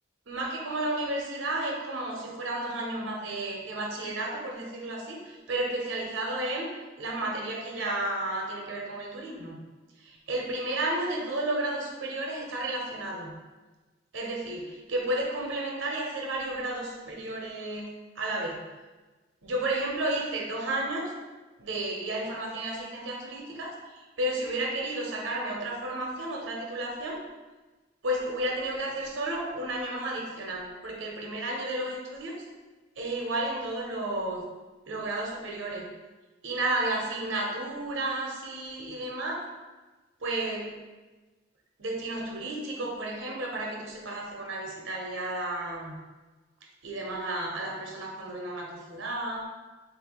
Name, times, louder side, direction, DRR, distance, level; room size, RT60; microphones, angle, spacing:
voice 1, 0.3-6.7 7.0-9.6 10.0-13.3 14.1-17.9 18.1-18.6 19.4-21.1 21.6-27.2 28.0-32.4 33.0-34.4 34.9-35.9 36.4-39.5 40.2-40.7 41.8-45.9 46.8-49.5, right 1 dB, 85° right, 0 dB, 0.8 m, -32 dB
3.6 x 2.7 x 3.8 m, 1.2 s
head